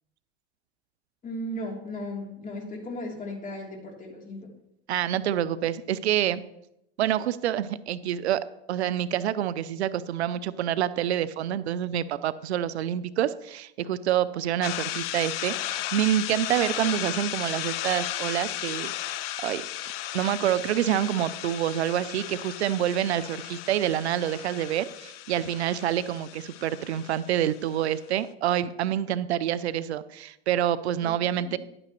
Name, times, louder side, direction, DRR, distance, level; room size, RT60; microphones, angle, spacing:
voice 1, 1.2-4.5 31.0-31.6, left 1 dB, 25° left, -1 dB, 3.1 m, -36 dB
voice 2, 4.9-6.4 7.0-8.4 8.7-19.6 20.1-31.6, right 11 dB, 90° right, 16 dB, 0.5 m, -27 dB
sound 1, 14.6-28.0, left 14 dB, 70° left, 0.7 m, -35 dB
11.0 x 8.8 x 3.1 m, 0.81 s
hypercardioid pair, 95°, 32 cm